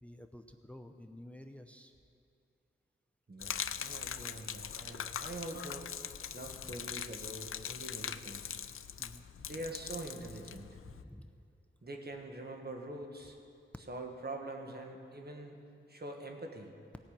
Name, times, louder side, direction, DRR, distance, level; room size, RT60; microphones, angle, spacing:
voice 1, 0.0-1.9 4.3-4.4 6.7-6.8 9.0-9.6 10.8-11.3, left 1 dB, 5° left, 7 dB, 0.6 m, -52 dB
voice 2, 3.3-8.6 9.5-10.8 11.8-13.4 13.9-15.6 15.9-16.7, right 2 dB, 50° right, 2 dB, 1.6 m, -44 dB
Gurgling / Liquid, 3.4-11.0, left 8 dB, 85° left, 0.4 m, -42 dB
17.5 x 5.9 x 8.7 m, 2.4 s
cardioid pair, 55°, 21 cm